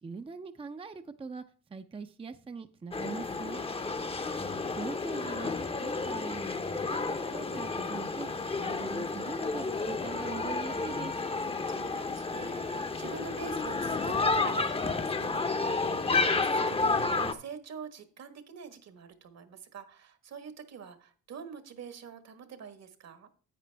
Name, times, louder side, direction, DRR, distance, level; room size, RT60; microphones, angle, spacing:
voice 1, 0.0-1.4 1.7-3.6 4.8-5.5 5.8-8.3 8.6-11.3, right 4 dB, 20° right, 8 dB, 0.5 m, -42 dB
sound 1, 2.9-17.3, left 3 dB, 20° left, 0.7 m, -31 dB
voice 2, 3.7-4.4 11.7-23.3, right 6 dB, 60° right, 10 dB, 1.4 m, -45 dB
10.0 x 8.2 x 3.4 m, 0.42 s
cardioid pair, 90°, 30 cm